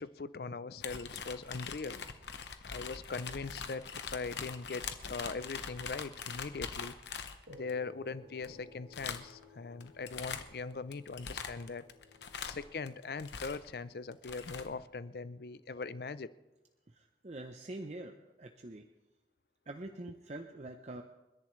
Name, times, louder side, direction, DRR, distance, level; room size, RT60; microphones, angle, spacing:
voice 1, 0.0-2.0 2.6-7.0 7.5-11.8 12.4-16.3, left 4 dB, 60° left, 15 dB, 0.5 m, -41 dB
sound 1, 0.8-7.7 8.4-8.6 8.9-9.4 9.8-10.6 10.9-13.7 14.1-14.7, left 6 dB, 85° left, 1.0 m, -42 dB
sound 2, 7.5-16.2, left 1 dB, 75° right, 1.6 m, -60 dB
voice 2, 17.0-18.8 19.7-21.0, right 2 dB, 40° right, 4 dB, 0.7 m, -45 dB
29.5 x 11.0 x 3.2 m, 1.1 s
head